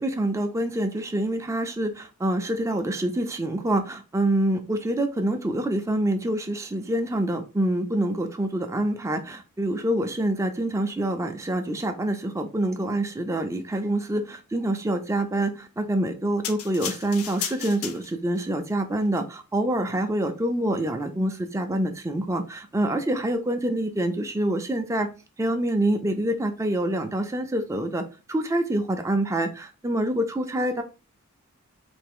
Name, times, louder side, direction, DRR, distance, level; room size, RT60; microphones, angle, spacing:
voice 1, 0.0-25.1 25.4-28.0 28.3-30.8, right 1 dB, 15° right, 6 dB, 0.4 m, -26 dB
sound 1, 16.4-18.4 19.1-19.2, left 8 dB, 75° left, 0.5 m, -34 dB
3.3 x 2.9 x 3.5 m, 0.31 s
head